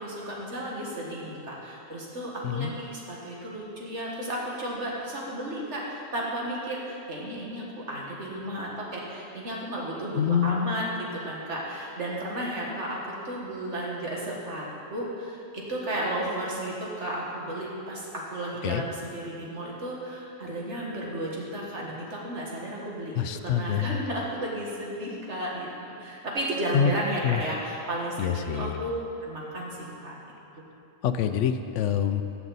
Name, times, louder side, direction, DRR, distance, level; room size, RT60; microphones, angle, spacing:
voice 1, 0.0-10.8 11.2-25.7 26.0-29.0 29.3-29.8 30.0-30.1, right 1 dB, 75° right, -3 dB, 2.0 m, -33 dB
voice 2, 10.1-10.7 18.6-18.8 23.2-24.0 26.7-26.9 27.2-27.4 28.2-28.8 31.0-32.2, left 8 dB, 90° left, 9 dB, 0.9 m, -26 dB
15.5 x 7.1 x 4.1 m, 2.8 s
omnidirectional pair, 1.2 m